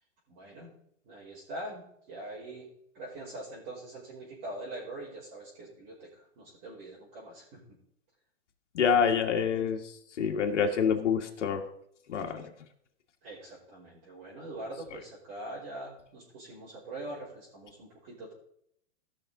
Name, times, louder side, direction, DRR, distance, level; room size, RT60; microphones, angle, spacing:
voice 1, 0.3-0.7 1.0-2.7 2.9-7.6 13.2-18.3, right 1 dB, 35° right, -8 dB, 3.6 m, -43 dB
voice 2, 8.7-9.8 10.2-11.6 12.1-12.5, left 7 dB, 80° left, 3 dB, 1.9 m, -26 dB
17.0 x 6.0 x 3.9 m, 0.71 s
hypercardioid pair, 150°, 35 cm